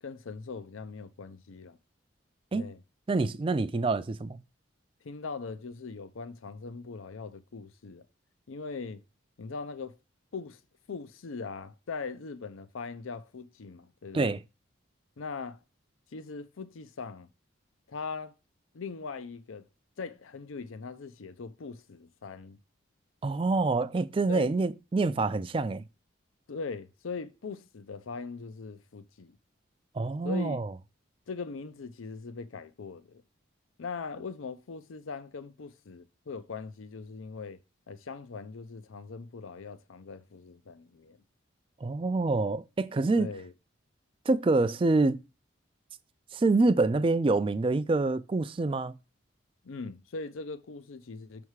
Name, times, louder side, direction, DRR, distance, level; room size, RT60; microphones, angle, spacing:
voice 1, 0.0-1.8 2.5-2.8 5.0-8.0 8.5-9.0 9.4-10.0 10.3-10.6 10.9-14.3 15.2-15.6 16.1-17.3 17.9-18.3 18.7-19.7 20.0-22.6 24.3-24.5 26.5-29.4 30.2-30.6 31.3-33.2 33.8-37.6 37.9-41.2 43.2-43.5 49.6-51.4, left 4 dB, 85° left, 0.5 m, -40 dB
voice 2, 3.1-4.4 14.1-14.4 23.2-25.8 29.9-30.7 41.8-43.3 44.3-45.2 46.3-48.9, right 3 dB, 25° right, 0.3 m, -26 dB
6.5 x 3.5 x 4.6 m
head